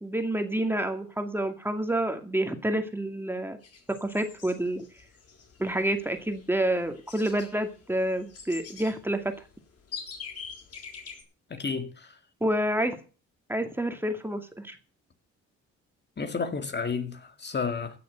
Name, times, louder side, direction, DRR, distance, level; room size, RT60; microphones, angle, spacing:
voice 1, 0.0-3.6 3.9-4.9 5.6-9.3 12.4-13.0 13.5-14.8, right 1 dB, 5° right, 2.3 m, -28 dB
sound 1, 3.6-11.2, left 6 dB, 55° left, 5.1 m, -45 dB
voice 2, 11.5-12.2 16.2-18.0, left 5 dB, 35° left, 2.1 m, -31 dB
16.0 x 6.9 x 7.8 m
cardioid pair, 90°, 30 cm